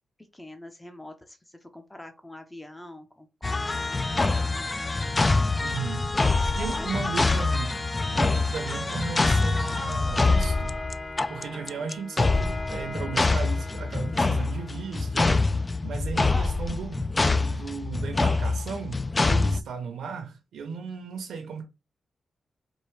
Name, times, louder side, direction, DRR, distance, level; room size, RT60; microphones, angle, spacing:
voice 1, 0.3-4.9 6.6-6.9 7.2-7.4 8.4-8.7 11.5-11.9 16.1-16.5 19.5-19.8 20.8-21.2, left 1 dB, 10° left, 0.7 m, -45 dB
sound 1, 3.4-19.6, left 3 dB, 30° left, 0.3 m, -25 dB
voice 2, 5.6-6.1 6.5-7.8 8.1-10.8 11.3-15.5 15.8-21.6, right 5 dB, 90° right, 0.7 m, -35 dB
4.6 x 2.7 x 3.2 m
cardioid pair, 75°, 0 cm